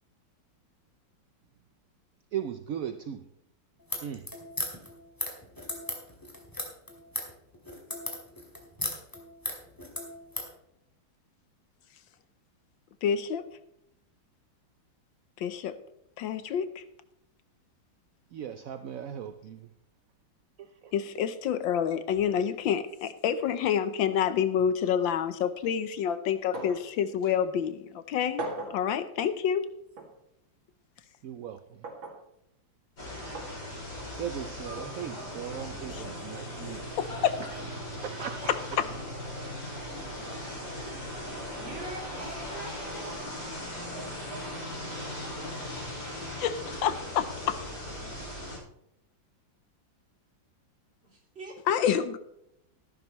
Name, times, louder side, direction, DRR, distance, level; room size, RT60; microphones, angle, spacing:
voice 1, 2.3-3.3 4.0-4.3 18.3-19.7 20.6-20.9 31.2-31.8 34.2-36.9 37.8-38.6, right 9 dB, 70° right, 8 dB, 0.8 m, -38 dB
sound 1, 3.8-10.5, left 1 dB, 10° left, 2.2 m, -36 dB
voice 2, 13.0-13.4 15.4-15.8 16.2-16.8 20.9-29.6 35.9-36.0 37.0-37.4 46.4-47.6 51.7-52.2, left 8 dB, 75° left, 12 dB, 1.5 m, -28 dB
sound 2, 26.5-26.9 27.2-27.3 28.4-28.8 30.0-30.1 31.8-32.2 33.3-33.5 34.8-34.9, right 2 dB, 90° right, 2.9 m, -37 dB
sound 3, 33.0-48.6, left 1 dB, 60° left, 6.4 m, -38 dB
voice 3, 41.6-43.5 51.0-51.9, right 2 dB, 30° right, -2 dB, 3.4 m, -44 dB
14.0 x 12.0 x 3.1 m, 0.77 s
omnidirectional pair, 2.1 m